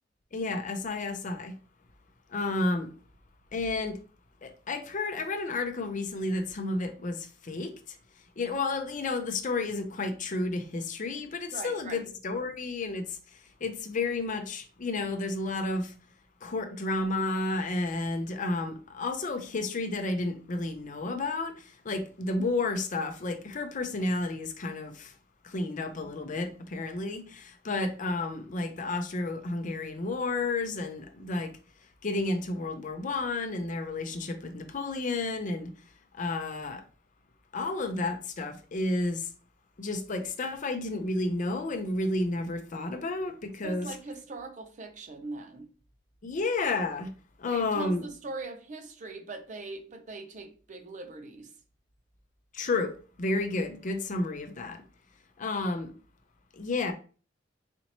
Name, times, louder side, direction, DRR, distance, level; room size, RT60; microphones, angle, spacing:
voice 1, 0.3-1.5 2.3-2.9 3.5-4.0 4.4-8.0 8.4-15.9 16.4-25.1 25.4-31.5 32.0-35.7 36.1-36.8 37.5-39.3 39.8-43.9 46.2-47.1 47.4-48.0 52.5-54.8 55.4-55.9 56.5-56.9, left 2 dB, 45° left, 0.5 m, -31 dB
voice 2, 11.5-12.1 43.6-45.7 47.5-51.5, right 3 dB, 40° right, 0.5 m, -41 dB
4.2 x 2.8 x 2.8 m
head